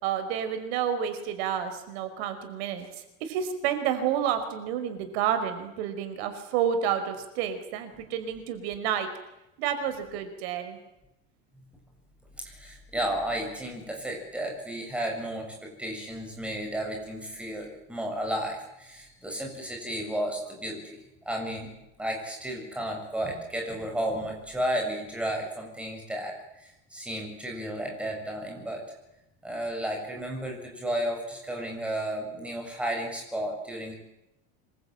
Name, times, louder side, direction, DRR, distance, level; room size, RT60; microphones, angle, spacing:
voice 1, 0.0-9.1 9.6-10.8, right 9 dB, 75° right, 9 dB, 5.0 m, -30 dB
voice 2, 12.5-21.0 21.3-21.7 22.0-26.3 26.6-28.8 29.4-33.9, right 1 dB, 5° right, 1 dB, 7.2 m, -33 dB
26.5 x 23.5 x 9.1 m, 0.89 s
cardioid pair, 175°, 31 cm